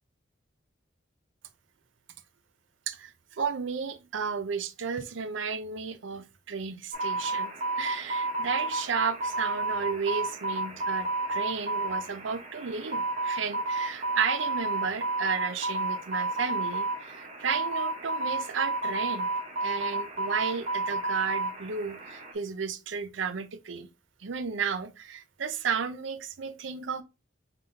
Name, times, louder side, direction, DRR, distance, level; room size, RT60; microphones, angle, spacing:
voice 1, 2.9-19.3 19.6-23.9 24.2-27.0, right 6 dB, 70° right, 0.6 m, -33 dB
sound 1, 6.9-22.3, right 2 dB, 35° right, 0.8 m, -31 dB
3.8 x 3.7 x 2.6 m
head